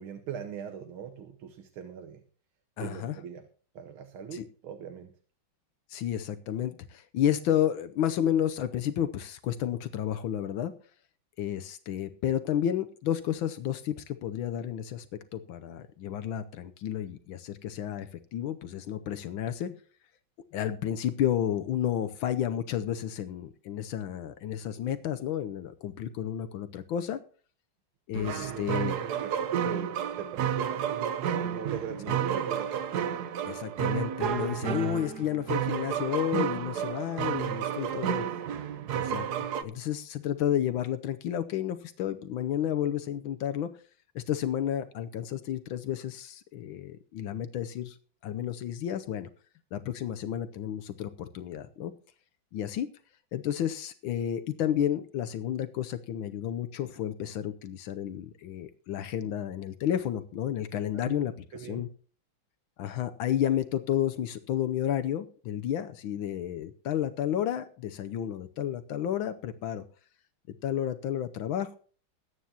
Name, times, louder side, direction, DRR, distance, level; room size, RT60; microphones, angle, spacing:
voice 1, 0.0-2.2 2.8-3.5 3.7-5.2 28.4-32.9 37.5-38.3 60.9-61.2 61.5-61.9, right 8 dB, 90° right, 7 dB, 1.8 m, -41 dB
voice 2, 2.8-3.1 4.3-4.5 5.9-10.7 11.4-15.1 15.3-19.8 20.5-27.2 28.1-28.9 33.5-38.2 38.9-39.3 39.6-43.7 44.1-48.0 48.2-49.3 49.7-51.9 52.5-52.9 53.3-61.3 61.7-61.9 62.8-69.8 70.6-71.8, left 10 dB, 80° left, 9 dB, 1.5 m, -31 dB
sound 1, 28.1-39.6, right 9 dB, 60° right, 1.3 m, -31 dB
21.0 x 9.3 x 2.9 m, 0.42 s
omnidirectional pair, 2.2 m